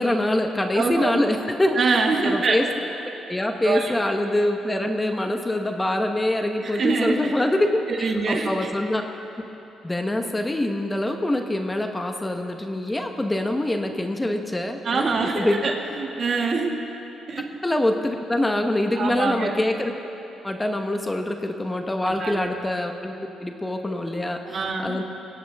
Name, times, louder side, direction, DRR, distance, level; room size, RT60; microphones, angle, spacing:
voice 1, 0.0-1.9 2.2-2.7 3.3-7.8 8.3-9.0 9.8-15.6 17.6-19.9 20.4-23.1 23.4-25.0, left 1 dB, 15° left, 4 dB, 1.1 m, -24 dB
voice 2, 0.7-1.2 1.7-2.6 3.6-3.9 6.6-7.3 7.9-8.7 14.8-16.7 17.3-17.5 19.0-19.6 22.0-22.5 24.5-25.0, right 4 dB, 50° right, 1 dB, 2.0 m, -24 dB
23.0 x 17.0 x 3.6 m, 3.0 s
cardioid pair, 90°, 0 cm